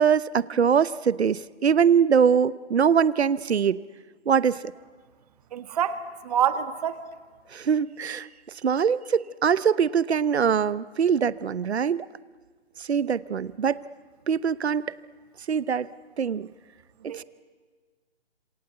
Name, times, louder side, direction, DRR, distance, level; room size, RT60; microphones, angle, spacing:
voice 1, 0.0-3.8 4.3-4.6 7.5-8.3 8.6-12.1 12.9-13.8 14.3-14.8 15.5-15.9 16.2-16.5 17.0-17.2, right 7 dB, 70° right, 18 dB, 0.9 m, -22 dB
voice 2, 5.5-7.0 17.1-17.2, right 9 dB, 35° right, 10 dB, 1.8 m, -27 dB
27.5 x 26.0 x 8.1 m, 1.5 s
figure-of-eight pair, 150°, 34 cm